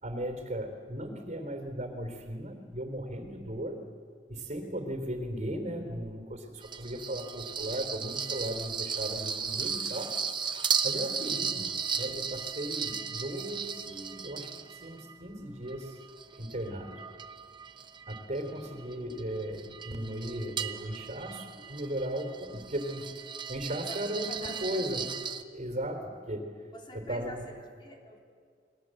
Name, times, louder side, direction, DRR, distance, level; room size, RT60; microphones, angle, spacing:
voice 1, 0.0-3.8 4.3-10.1 10.8-11.7 12.0-16.0 16.4-17.0 18.1-23.1 23.5-25.1 25.5-26.5 26.9-27.3, right 1 dB, 40° right, 6 dB, 3.5 m, -36 dB
sound 1, 6.6-15.1 15.7-25.4, right 6 dB, 25° right, 1.0 m, -36 dB
voice 2, 23.9-25.1 26.7-28.2, equal, 30° left, 0 dB, 3.5 m, -46 dB
29.5 x 21.5 x 7.7 m, 2.1 s
head